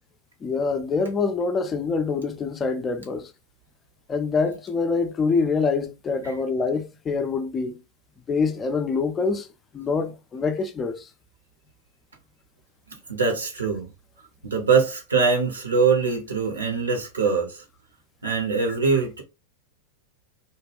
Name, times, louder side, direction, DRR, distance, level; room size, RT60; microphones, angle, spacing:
voice 1, 0.4-3.3 4.1-7.8 8.3-9.5 9.7-11.1, left 4 dB, 20° left, 0.4 m, -25 dB
voice 2, 12.9-13.9 14.4-17.6 18.2-19.2, right 5 dB, 70° right, 0.8 m, -23 dB
2.2 x 2.2 x 3.3 m
figure-of-eight pair, 90°, 0 cm